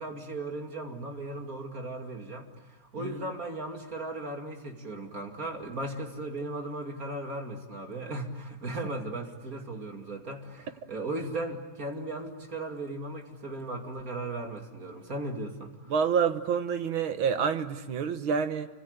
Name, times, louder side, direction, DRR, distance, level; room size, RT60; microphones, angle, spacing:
voice 1, 0.0-15.9, right 2 dB, 45° right, 3 dB, 2.9 m, -37 dB
voice 2, 3.0-3.3 15.9-18.7, right 6 dB, 75° right, 10 dB, 2.1 m, -28 dB
28.5 x 25.5 x 8.1 m, 1.2 s
omnidirectional pair, 2.3 m